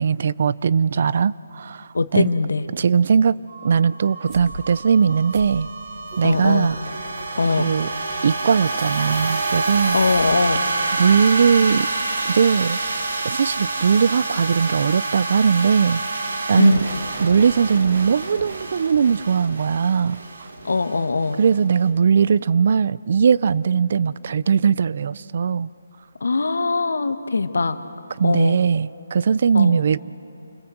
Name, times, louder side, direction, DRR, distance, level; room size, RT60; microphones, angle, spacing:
voice 1, 0.0-2.3 2.7-3.4 3.6-5.7 6.2-6.8 7.6-7.9 8.2-10.0 11.0-11.9 12.3-12.8 13.2-16.0 16.5-16.8 17.2-20.2 21.4-25.7 28.2-30.0, right 6 dB, 50° right, 20 dB, 0.5 m, -19 dB
voice 2, 1.9-2.7 6.2-6.7 7.4-7.7 9.9-10.6 16.6-17.0 20.6-21.4 26.2-27.8 28.2-28.6 29.5-29.8, left 3 dB, 80° left, 11 dB, 1.3 m, -21 dB
sound 1, 3.5-21.8, right 3 dB, 75° right, 3.8 m, -28 dB
sound 2, 4.3-4.6 5.3-10.7, right 1 dB, 20° right, 4.7 m, -40 dB
28.5 x 20.5 x 7.9 m, 2.7 s
hypercardioid pair, 160°, 0 cm